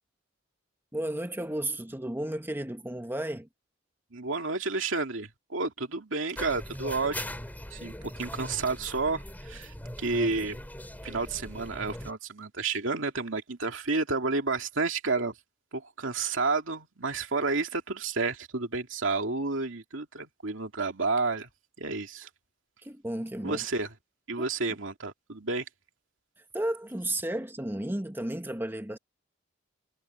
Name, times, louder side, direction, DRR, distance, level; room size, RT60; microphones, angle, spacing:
voice 1, 0.9-3.5 22.8-23.6 24.4-24.5 26.5-29.0, right 1 dB, 10° right, 1.4 m, -33 dB
voice 2, 4.1-7.3 7.7-10.6 11.0-15.3 15.7-21.5 21.8-22.3 23.4-23.9 24.3-25.6, right 3 dB, 70° right, 2.7 m, -31 dB
sound 1, 6.3-12.1, left 1 dB, 10° left, 3.3 m, -40 dB
head